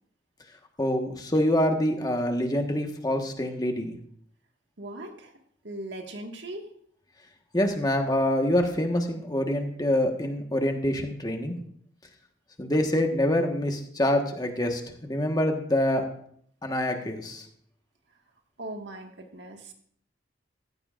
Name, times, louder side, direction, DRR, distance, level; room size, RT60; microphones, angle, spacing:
voice 1, 0.8-3.9 7.5-11.6 12.6-16.0 16.6-17.4, left 1 dB, 20° left, 4 dB, 1.3 m, -26 dB
voice 2, 4.8-5.3 5.6-6.7 18.6-19.7, right 1 dB, 65° right, 3 dB, 1.7 m, -39 dB
15.0 x 15.0 x 2.5 m, 0.64 s
head